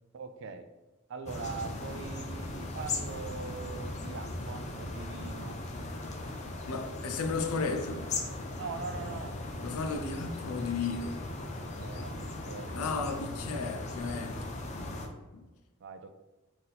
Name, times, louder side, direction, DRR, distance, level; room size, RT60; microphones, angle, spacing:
voice 1, 0.1-0.6 1.1-5.6 8.5-9.4 11.7-12.7 15.8-16.1, right 4 dB, 55° right, 0.3 m, -42 dB
sound 1, 1.3-15.1, left 2 dB, 30° left, 0.5 m, -38 dB
voice 2, 6.7-8.1 9.6-11.3 12.7-14.5 15.3-15.5, left 4 dB, 90° left, 0.5 m, -34 dB
4.0 x 2.6 x 4.0 m
head